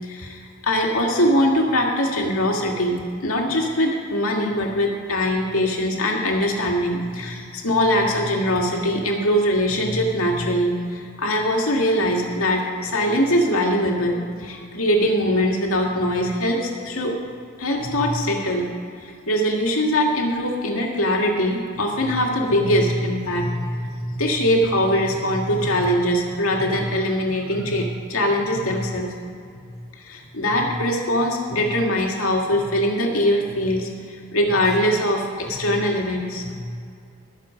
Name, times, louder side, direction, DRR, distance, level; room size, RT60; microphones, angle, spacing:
voice 1, 0.0-17.1 17.6-18.7 19.0-29.1 29.5-29.7 30.0-36.6, equal, 75° left, 0 dB, 2.1 m, -22 dB
20.0 x 6.9 x 5.2 m, 2.3 s
head